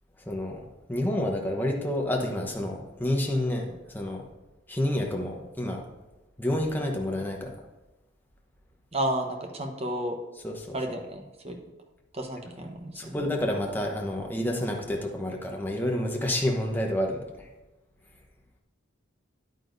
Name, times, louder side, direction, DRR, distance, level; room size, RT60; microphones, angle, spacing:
voice 1, 0.3-4.2 4.7-5.8 6.4-7.5 10.4-10.7 12.9-17.5, left 1 dB, 10° left, 0 dB, 0.9 m, -29 dB
voice 2, 8.9-10.2 10.7-11.6 12.1-13.3, right 1 dB, 30° right, 3 dB, 1.0 m, -32 dB
10.0 x 9.2 x 2.6 m, 1.1 s
head